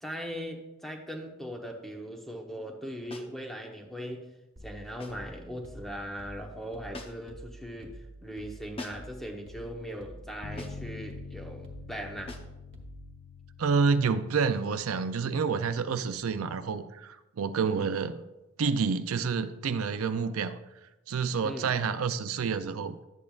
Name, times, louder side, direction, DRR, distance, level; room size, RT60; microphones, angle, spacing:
voice 1, 0.0-4.3 4.6-12.3 21.4-21.8, equal, ahead, 2 dB, 1.0 m, -39 dB
sound 1, 3.1-3.4 5.0-5.3 6.9-7.4 8.8-9.2 10.6-10.9 12.3-12.6, left 2 dB, 25° left, 0.8 m, -43 dB
sound 2, 4.6-13.2, right 1 dB, 55° right, 1.2 m, -48 dB
Bass guitar, 10.4-16.7, left 5 dB, 55° left, 0.4 m, -47 dB
voice 2, 13.6-18.2 18.6-20.6 21.1-23.0, right 5 dB, 85° right, 11 dB, 0.5 m, -28 dB
11.5 x 8.6 x 2.4 m, 1.0 s
head